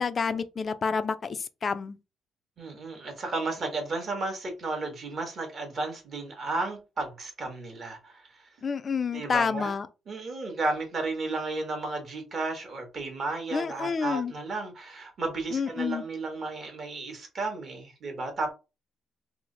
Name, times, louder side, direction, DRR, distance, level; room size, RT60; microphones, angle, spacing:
voice 1, 0.0-2.0 8.6-9.9 13.5-14.3 15.5-16.0, left 5 dB, 30° left, 0.3 m, -29 dB
voice 2, 2.6-8.4 9.1-9.7 10.1-18.5, right 3 dB, 35° right, 1.1 m, -33 dB
3.1 x 2.0 x 3.7 m
cardioid pair, 160°, 0 cm